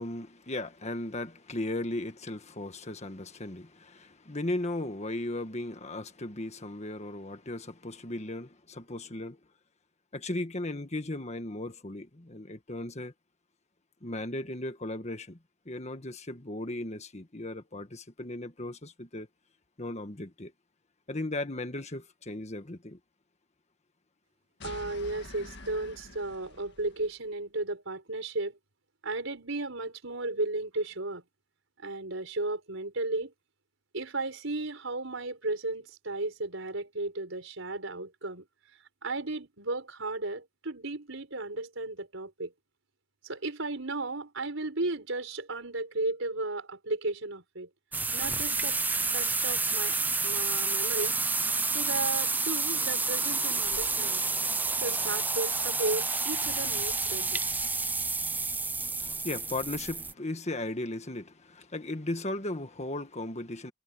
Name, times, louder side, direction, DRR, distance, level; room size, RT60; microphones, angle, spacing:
voice 1, 0.0-9.4 10.1-13.1 14.0-15.4 15.6-19.3 19.8-20.5 21.1-23.0 59.0-63.7, left 1 dB, 35° left, 1.6 m, -36 dB
sound 1, 24.6-27.2, left 2 dB, 55° left, 2.0 m, -47 dB
voice 2, 24.6-28.6 29.0-31.2 31.8-33.3 33.9-38.4 39.0-42.5 43.2-47.7 48.1-48.8 49.1-50.0 50.2-51.2 51.7-54.2 54.8-57.4, right 2 dB, 70° right, 5.0 m, -34 dB
Opening soda can and pouring soda, 47.9-60.1, right 3 dB, 10° right, 0.5 m, -29 dB
head